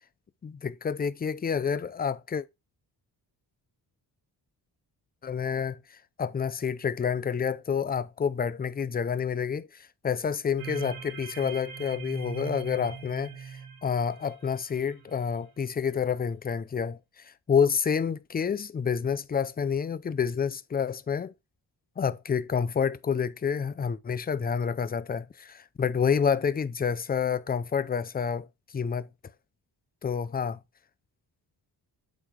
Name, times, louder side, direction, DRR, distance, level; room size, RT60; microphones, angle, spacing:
voice 1, 0.4-2.4 5.2-21.3 22.0-28.5 28.7-29.1 30.0-30.6, left 7 dB, 25° left, 0.4 m, -29 dB
sound 1, 10.6-15.4, right 7 dB, 60° right, 1.8 m, -41 dB
8.0 x 4.2 x 4.3 m
wide cardioid pair, 130°, 41 cm